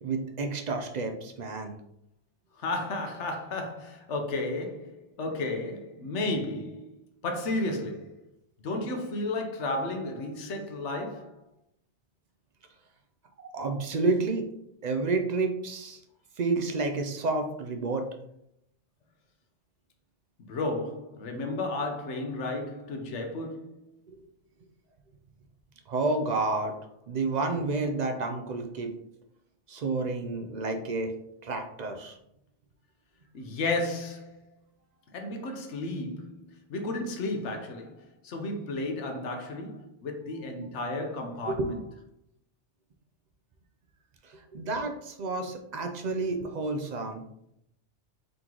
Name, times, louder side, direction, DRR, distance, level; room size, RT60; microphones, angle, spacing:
voice 1, 0.0-1.7 13.5-14.5 14.8-16.0 16.4-18.0 25.9-26.7 27.1-28.9 29.7-31.1 31.4-32.2 41.5-41.7 44.5-47.2, right 3 dB, 60° right, 0.4 m, -30 dB
voice 2, 2.6-7.0 7.2-8.2 8.6-11.4 20.4-23.8 33.3-34.4 35.1-41.8, left 2 dB, 80° left, 1.1 m, -33 dB
3.8 x 3.0 x 3.7 m
omnidirectional pair, 1.2 m